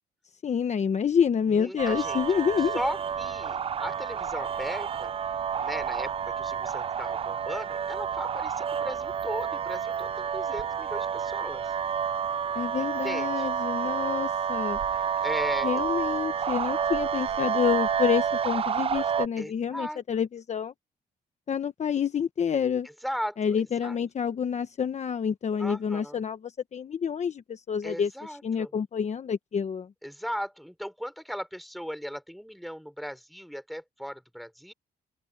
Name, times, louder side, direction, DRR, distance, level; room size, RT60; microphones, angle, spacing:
voice 1, 0.4-2.8 12.5-14.8 15.6-20.7 21.5-22.9 23.4-29.9, left 7 dB, 45° left, 1.1 m, -28 dB
voice 2, 1.5-2.2 2.7-5.1 5.6-11.7 13.0-13.5 14.9-15.9 19.4-20.0 23.0-24.0 25.6-26.2 27.8-28.7 30.0-34.7, equal, ahead, 4.4 m, -37 dB
sound 1, 1.8-19.3, right 7 dB, 35° right, 0.4 m, -29 dB
cardioid pair, 110°, 17 cm